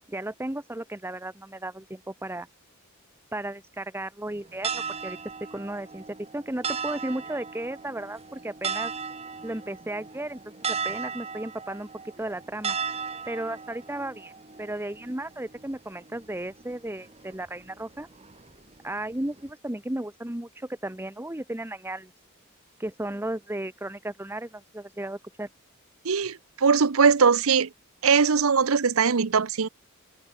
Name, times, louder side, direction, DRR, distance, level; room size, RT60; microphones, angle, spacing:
voice 1, 0.1-2.5 3.3-5.2 5.5-6.0 6.3-8.9 9.4-10.4 10.7-11.9 12.2-12.8 13.3-14.3 14.6-18.1 18.8-22.1 22.8-25.5, right 1 dB, 10° right, 1.1 m, -34 dB
sound 1, 4.3-19.5, right 5 dB, 30° right, 1.8 m, -36 dB
voice 2, 26.0-27.7 28.0-29.7, right 5 dB, 70° right, 0.7 m, -21 dB
open air
head